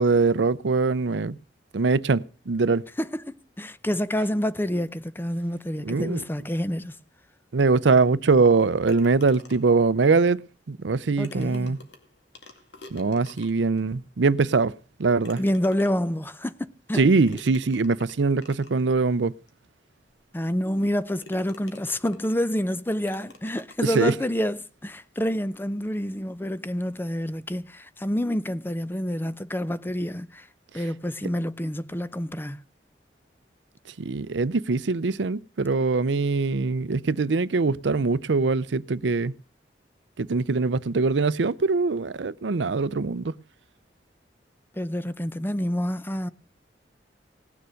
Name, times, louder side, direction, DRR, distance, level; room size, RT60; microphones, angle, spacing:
voice 1, 0.0-1.4 1.7-2.8 5.8-6.2 7.5-10.4 10.7-11.8 12.9-14.7 15.0-15.4 16.9-19.3 23.8-24.1 30.7-30.8 31.2-31.3 34.0-39.3 40.2-43.3, right 4 dB, 80° right, 0.6 m, -22 dB
voice 2, 3.0-7.0 11.2-11.8 15.4-17.0 20.3-30.5 30.7-32.6 44.8-46.3, equal, 10° left, 0.6 m, -28 dB
sound 1, 8.9-9.8 10.9-11.0 11.2-13.8 14.4-14.5 15.2-16.2 17.3-18.8 19.5-19.6 20.1-20.2 20.7-20.9 21.2-22.5 23.1-24.2, left 3 dB, 70° left, 2.3 m, -48 dB
18.5 x 6.9 x 6.3 m
head